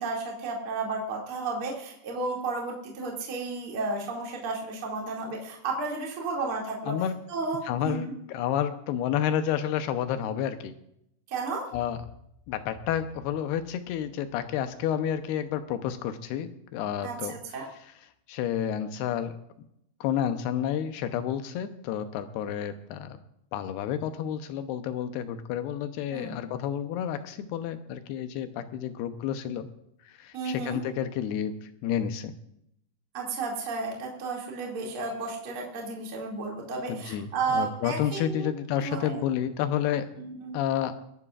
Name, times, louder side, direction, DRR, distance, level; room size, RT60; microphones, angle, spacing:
voice 1, 0.0-7.0 7.3-8.1 11.3-11.7 17.0-17.7 26.1-26.5 30.3-30.8 33.1-38.5 38.8-39.2 40.2-40.5, right 3 dB, 35° right, -2 dB, 2.8 m, -33 dB
voice 2, 6.9-7.2 7.7-10.7 11.7-12.0 12.5-17.3 18.3-19.4 20.0-23.2 23.5-29.7 30.1-32.3 36.9-40.1 40.5-40.9, left 9 dB, 80° left, 9 dB, 2.9 m, -30 dB
25.5 x 11.0 x 2.5 m, 0.76 s
omnidirectional pair, 4.6 m